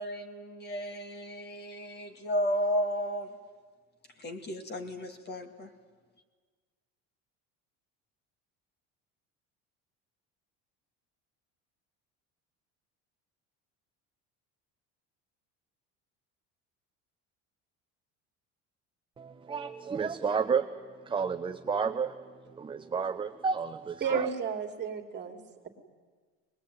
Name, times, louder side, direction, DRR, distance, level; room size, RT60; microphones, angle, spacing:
voice 1, 0.0-3.3 4.2-5.7, equal, 30° left, 6 dB, 2.2 m, -33 dB
voice 2, 19.2-24.3, right 5 dB, 15° right, 7 dB, 0.6 m, -32 dB
voice 3, 24.0-25.7, right 6 dB, 35° right, 4 dB, 2.8 m, -33 dB
23.0 x 20.5 x 9.4 m, 1.5 s
cardioid pair, 135°, 32 cm